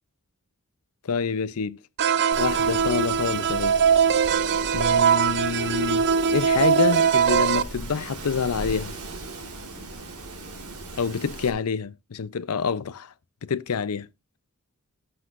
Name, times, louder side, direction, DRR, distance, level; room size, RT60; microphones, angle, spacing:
voice 1, 1.0-1.8 2.4-3.8 4.7-6.0 6.3-8.9 10.9-13.1 13.4-14.1, left 5 dB, 80° left, 0.5 m, -27 dB
sound 1, 2.0-7.6, right 7 dB, 50° right, 0.5 m, -21 dB
Wind, 2.3-11.5, right 2 dB, 80° right, 2.2 m, -38 dB
13.5 x 7.9 x 2.5 m
head